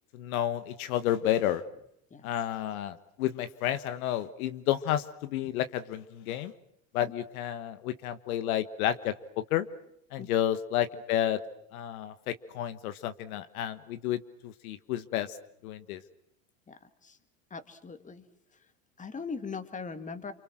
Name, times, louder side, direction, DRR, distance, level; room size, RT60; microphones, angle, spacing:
voice 1, 0.1-1.6 2.2-6.5 6.9-9.1 9.5-9.7 10.1-11.4 11.7-15.4 15.6-16.0, left 12 dB, 75° left, 11 dB, 1.5 m, -31 dB
voice 2, 16.7-17.2 17.5-18.3 19.0-20.3, left 5 dB, 15° left, 9 dB, 2.0 m, -40 dB
29.5 x 24.5 x 6.2 m, 0.74 s
supercardioid pair, 110°, 43 cm